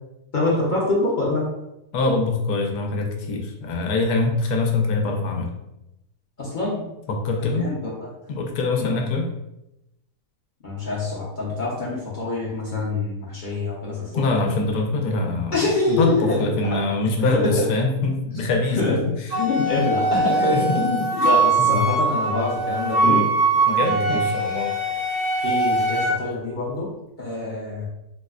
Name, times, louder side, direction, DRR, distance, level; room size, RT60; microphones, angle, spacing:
voice 1, 0.3-1.4 6.4-6.8 7.4-8.1 8.8-9.1 10.6-14.2 15.5-16.9 17.3-17.7 18.8-19.0 19.3-23.2 23.5-24.3 25.4-26.9 27.2-27.9, left 2 dB, 50° left, -5 dB, 0.6 m, -25 dB
voice 2, 1.9-5.5 7.1-7.7 8.3-9.3 14.1-19.0 20.5-20.8 21.6-21.8 23.0-23.3 23.7-24.7, left 3 dB, 80° left, 2 dB, 1.1 m, -24 dB
Wind instrument woodwind instrument, 19.3-26.1, right 3 dB, 75° right, 1.3 m, -22 dB
4.7 x 2.1 x 2.3 m, 0.89 s
omnidirectional pair, 1.6 m